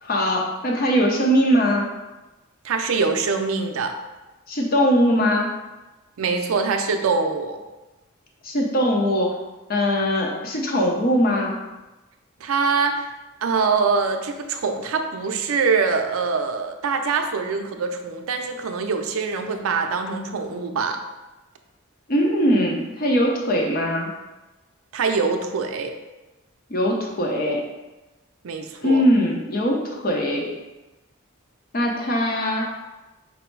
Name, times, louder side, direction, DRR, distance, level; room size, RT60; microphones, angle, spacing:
voice 1, 0.0-1.9 4.5-5.5 8.4-9.4 9.7-11.6 22.1-24.1 26.7-27.6 28.8-30.5 31.7-32.8, equal, 45° left, 0 dB, 0.6 m, -21 dB
voice 2, 2.6-3.9 6.2-7.6 12.4-13.1 13.4-21.0 24.9-25.9 28.4-29.0, right 4 dB, 85° right, 6 dB, 0.4 m, -24 dB
5.2 x 2.0 x 4.5 m, 1.1 s
head